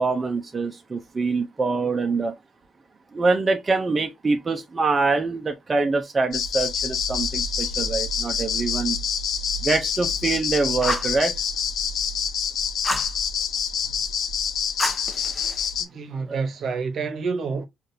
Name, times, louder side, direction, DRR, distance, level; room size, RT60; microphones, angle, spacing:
voice 1, 0.0-2.3 3.1-9.0 9.6-11.3 16.3-16.4, right 3 dB, 30° right, 0.6 m, -24 dB
sound 1, 6.3-15.8, left 6 dB, 75° left, 0.6 m, -27 dB
Fire, 10.8-11.2 12.8-13.1 14.8-15.7, left 1 dB, 10° left, 0.8 m, -28 dB
voice 2, 15.8-17.6, right 5 dB, 60° right, 0.9 m, -28 dB
5.1 x 2.5 x 2.7 m
cardioid pair, 90°, 0 cm